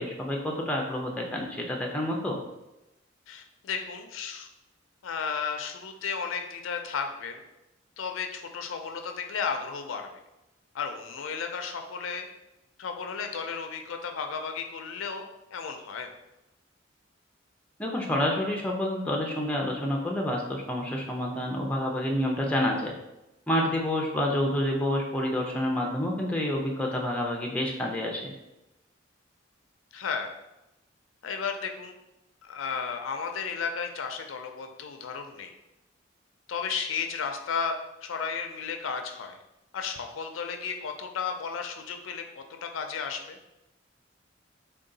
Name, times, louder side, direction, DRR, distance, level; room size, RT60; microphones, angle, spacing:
voice 1, 0.0-2.4 17.8-22.9 23.5-28.3, left 1 dB, 5° left, 0 dB, 0.4 m, -28 dB
voice 2, 3.3-4.5 5.0-7.4 8.0-10.1 10.7-12.3 12.8-15.2 15.5-16.1 29.9-30.3 31.2-31.9 32.5-35.5 36.5-39.4 39.7-43.4, left 6 dB, 85° left, 5 dB, 0.4 m, -33 dB
3.7 x 2.3 x 3.8 m, 0.93 s
head